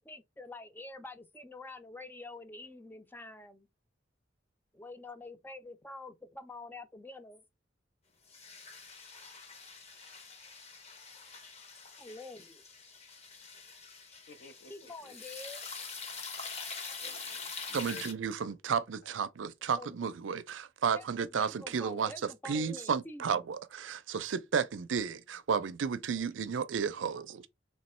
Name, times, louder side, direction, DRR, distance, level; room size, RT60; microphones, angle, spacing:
voice 1, 0.0-3.7 4.7-7.4 12.0-12.6 14.7-15.7 19.8-19.9 20.8-21.1 21.3-23.4, left 2 dB, 10° left, 0.5 m, -47 dB
sound 1, 8.3-18.1, left 4 dB, 35° left, 0.9 m, -45 dB
voice 2, 14.3-15.1 17.0-18.1 18.5-18.6 19.0-19.1, left 3 dB, 60° left, 0.6 m, -52 dB
voice 3, 17.7-27.5, right 6 dB, 80° right, 0.5 m, -33 dB
3.3 x 3.0 x 4.3 m
head